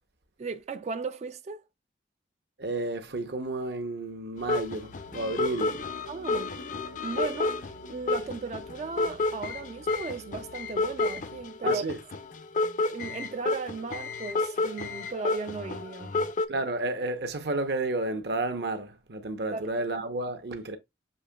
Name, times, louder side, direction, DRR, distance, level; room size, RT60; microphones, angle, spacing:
voice 1, 0.4-1.6 6.1-6.5 7.0-11.9 12.9-16.1 19.5-19.7, right 4 dB, 40° right, 0.3 m, -36 dB
voice 2, 2.6-5.8 11.6-12.0 16.5-20.8, right 2 dB, 65° right, 0.8 m, -31 dB
sound 1, 4.4-16.4, left 3 dB, 45° left, 0.5 m, -31 dB
sound 2, 4.5-16.3, left 1 dB, 85° left, 0.6 m, -49 dB
6.7 x 2.9 x 2.3 m
head